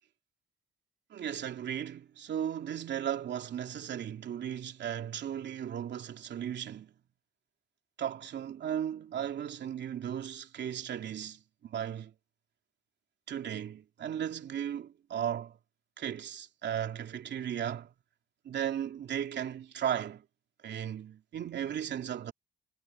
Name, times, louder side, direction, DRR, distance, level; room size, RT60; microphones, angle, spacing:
voice 1, 1.1-6.9 8.0-12.1 13.3-15.6 16.0-17.9 18.4-20.2 20.6-22.3, right 9 dB, 60° right, 2.9 m, -36 dB
cardioid pair, 90°, 20 cm